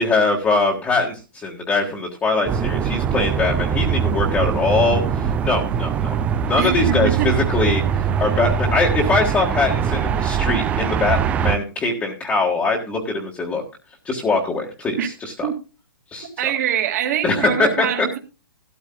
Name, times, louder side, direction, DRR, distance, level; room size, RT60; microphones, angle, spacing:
voice 1, 0.0-6.2 6.5-13.6 14.0-15.3 16.1-16.3 17.2-17.9, left 3 dB, 10° left, -1 dB, 1.5 m, -22 dB
sound 1, 2.5-11.6, right 7 dB, 10° right, 0.4 m, -22 dB
voice 2, 6.6-7.3 15.0-15.1 15.4-15.5 16.4-18.2, right 9 dB, 45° right, 4 dB, 2.1 m, -23 dB
14.0 x 12.5 x 2.2 m, 0.31 s
hypercardioid pair, 155°, 11 cm